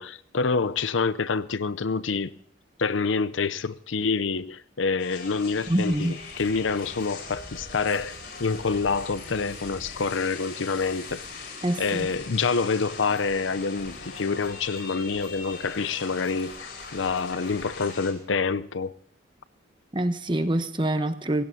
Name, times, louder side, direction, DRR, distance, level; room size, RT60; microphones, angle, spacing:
voice 1, 0.0-2.4 2.8-8.1 8.4-11.2 11.8-18.9, left 4 dB, 85° left, 0.7 m, -27 dB
sound 1, 5.0-18.1, left 4 dB, 60° left, 4.9 m, -40 dB
voice 2, 5.7-6.2 11.6-12.1 19.9-21.4, right 1 dB, 25° right, 1.0 m, -25 dB
28.0 x 17.0 x 2.8 m
head